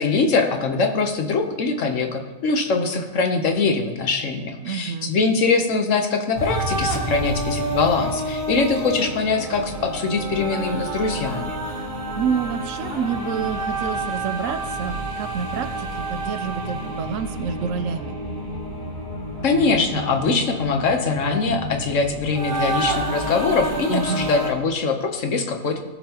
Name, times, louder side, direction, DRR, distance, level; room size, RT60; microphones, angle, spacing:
voice 1, 0.0-11.6 19.4-25.8, left 4 dB, 65° left, 5 dB, 1.2 m, -22 dB
voice 2, 4.6-5.2 11.7-18.2 23.9-24.3, right 7 dB, 70° right, 10 dB, 1.0 m, -28 dB
sound 1, 6.3-24.5, right 1 dB, 45° right, 1.7 m, -29 dB
16.5 x 5.6 x 2.9 m, 1.2 s
omnidirectional pair, 1.5 m